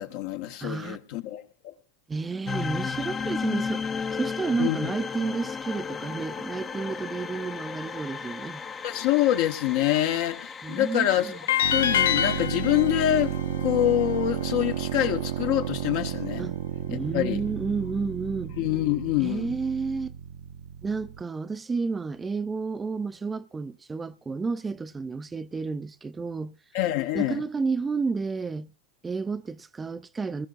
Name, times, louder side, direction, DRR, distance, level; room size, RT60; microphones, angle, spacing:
voice 1, 0.0-1.7 4.6-4.9 8.8-16.5 16.9-17.4 18.6-19.6 26.7-27.4, left 13 dB, 60° left, 1.2 m, -26 dB
voice 2, 0.6-1.0 2.1-3.9 4.1-8.6 10.6-11.4 16.4-16.6 16.9-18.5 19.2-20.1 20.8-26.6 27.1-28.7 29.0-30.5, right 4 dB, 15° right, 0.5 m, -31 dB
sound 1, 2.5-12.5, left 5 dB, 25° left, 0.6 m, -34 dB
sound 2, 11.5-14.6, left 9 dB, 80° left, 0.6 m, -27 dB
sound 3, 11.6-21.2, right 10 dB, 70° right, 0.7 m, -33 dB
20.0 x 14.0 x 2.6 m
hypercardioid pair, 105°, 0 cm